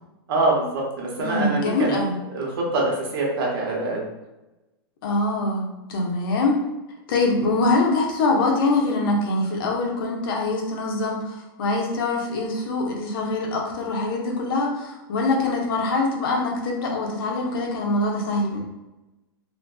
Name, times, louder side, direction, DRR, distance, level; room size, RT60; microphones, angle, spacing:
voice 1, 0.3-2.0 2.3-4.0, right 2 dB, 65° right, -2 dB, 0.9 m, -24 dB
voice 2, 1.2-2.1 5.0-6.6 7.1-18.6, left 2 dB, 65° left, -1 dB, 0.7 m, -24 dB
2.5 x 2.4 x 2.2 m, 1.0 s
hypercardioid pair, 145°, 13 cm